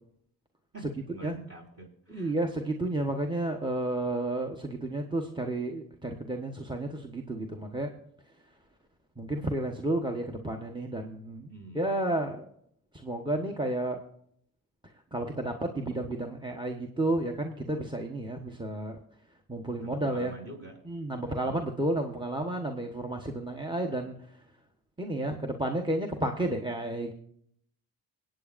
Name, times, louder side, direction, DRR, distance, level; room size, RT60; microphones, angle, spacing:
voice 1, 0.7-2.3 11.5-11.9 19.8-20.8 21.1-21.5, right 2 dB, 40° right, 0 dB, 5.9 m, -46 dB
voice 2, 2.1-7.9 9.2-11.5 11.7-12.4 12.9-14.0 15.1-19.0 19.5-20.3 20.9-24.1 25.0-27.1, right 1 dB, 10° right, 4 dB, 1.2 m, -31 dB
25.5 x 9.1 x 2.6 m, 0.68 s
cardioid pair, 70°, 37 cm